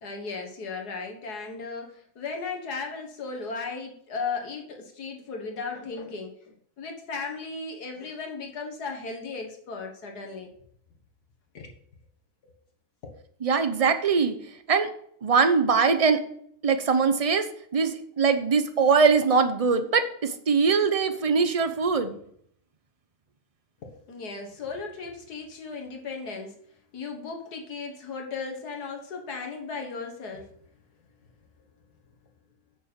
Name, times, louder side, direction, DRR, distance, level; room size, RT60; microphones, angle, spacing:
voice 1, 0.0-10.5 11.5-11.7 13.0-13.1 23.8-26.6 26.9-30.5, left 4 dB, 75° left, 3 dB, 2.1 m, -36 dB
voice 2, 13.4-14.3 14.7-14.9 15.2-16.2 16.6-17.4 17.7-22.2, right 5 dB, 35° right, 9 dB, 0.6 m, -22 dB
8.6 x 6.9 x 5.3 m, 0.65 s
omnidirectional pair, 1.7 m